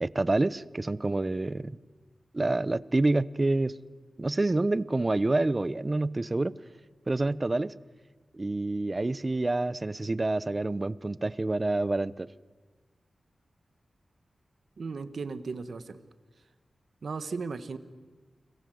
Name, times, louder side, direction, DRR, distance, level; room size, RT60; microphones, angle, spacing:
voice 1, 0.0-1.8 2.3-3.7 4.2-6.5 7.1-7.7 8.3-12.3, right 2 dB, 30° right, 18 dB, 0.7 m, -27 dB
voice 2, 14.8-16.0 17.0-17.8, right 4 dB, 65° right, 11 dB, 1.5 m, -36 dB
30.0 x 22.0 x 7.8 m, 1.3 s
wide cardioid pair, 85°, 0 cm